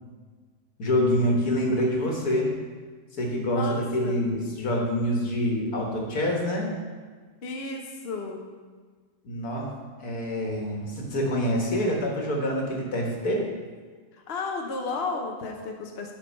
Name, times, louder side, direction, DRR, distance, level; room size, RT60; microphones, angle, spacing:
voice 1, 0.8-2.5 3.1-6.7 9.2-9.7 10.0-13.4, equal, 75° left, -1 dB, 2.1 m, -26 dB
voice 2, 3.5-4.2 7.4-8.4 14.1-16.1, left 3 dB, 45° left, 2 dB, 1.0 m, -33 dB
10.5 x 4.6 x 5.5 m, 1.5 s
omnidirectional pair, 1.6 m